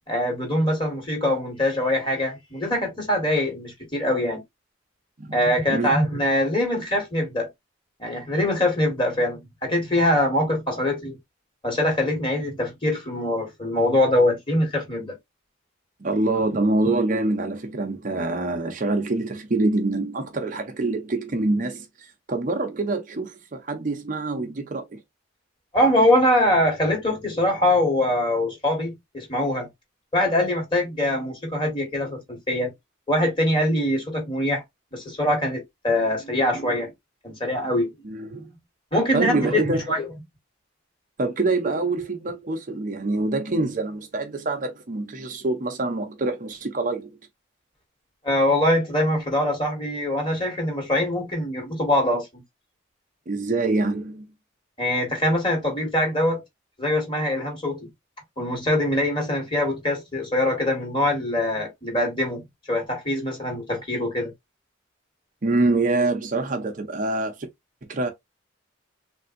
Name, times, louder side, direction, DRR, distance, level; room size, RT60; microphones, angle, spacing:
voice 1, 0.1-4.4 5.3-7.5 8.0-11.2 11.6-15.1 25.7-29.7 30.1-32.7 33.1-34.6 34.9-36.9 37.2-37.9 38.3-38.4 38.9-40.1 48.2-52.4 54.8-56.4 56.8-57.9 58.4-62.4 62.7-64.3, left 1 dB, 25° left, 1.5 m, -23 dB
voice 2, 16.0-25.0 38.0-38.5 39.1-39.9 41.2-47.1 53.3-54.2 65.4-67.5 67.9-68.1, right 2 dB, 40° right, 0.6 m, -25 dB
3.4 x 2.5 x 2.5 m
head